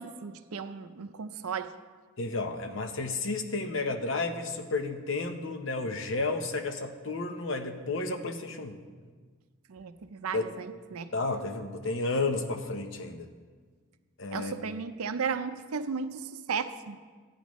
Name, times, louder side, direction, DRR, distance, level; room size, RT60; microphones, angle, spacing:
voice 1, 0.0-1.7 9.7-11.1 14.3-17.0, right 5 dB, 80° right, 11 dB, 0.5 m, -35 dB
voice 2, 2.2-8.8 10.3-10.5 11.1-13.3 14.2-14.5, left 3 dB, 60° left, 6 dB, 0.8 m, -32 dB
14.0 x 10.0 x 3.1 m, 1.5 s
head